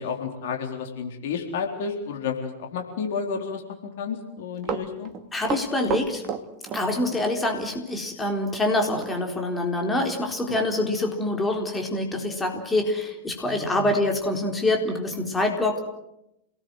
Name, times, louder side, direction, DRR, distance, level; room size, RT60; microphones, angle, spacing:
voice 1, 0.0-3.6 4.0-5.1 10.5-10.6 13.5-13.9, left 6 dB, 55° left, 3 dB, 4.0 m, -31 dB
Run, 4.4-7.3 7.5-7.7 9.0-9.2 9.5-9.6 10.1-10.2 10.5-10.7 11.3-11.4, right 7 dB, 35° right, 2.3 m, -32 dB
voice 2, 5.3-6.2 6.7-15.8, left 2 dB, 10° left, 3 dB, 4.1 m, -25 dB
28.0 x 19.0 x 7.9 m, 0.86 s
figure-of-eight pair, 90°, 0 cm